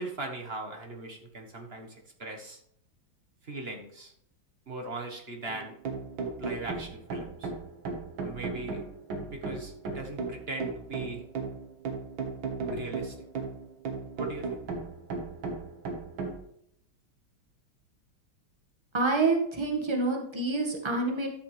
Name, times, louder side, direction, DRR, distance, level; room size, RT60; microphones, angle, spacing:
voice 1, 0.0-2.6 3.4-4.1 4.7-5.7 6.4-7.5 8.2-8.8 9.3-11.2 12.7-13.1 14.2-14.6, right 2 dB, 35° right, 3 dB, 1.3 m, -39 dB
sound 1, 5.5-16.4, right 4 dB, 70° right, 2.3 m, -36 dB
voice 2, 18.9-21.3, right 3 dB, 15° right, 1 dB, 1.6 m, -27 dB
12.5 x 6.7 x 3.4 m, 0.67 s
omnidirectional pair, 2.3 m